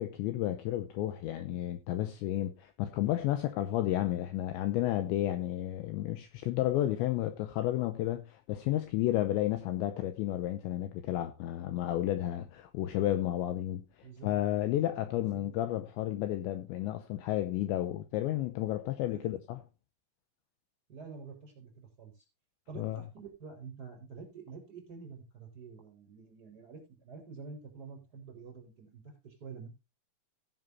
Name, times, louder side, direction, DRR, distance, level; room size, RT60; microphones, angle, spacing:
voice 1, 0.0-19.6 22.8-23.0, left 13 dB, 80° left, 2.7 m, -32 dB
voice 2, 20.9-22.3 22.7-29.7, right 5 dB, 20° right, 4.2 m, -48 dB
15.5 x 10.5 x 2.6 m
omnidirectional pair, 5.8 m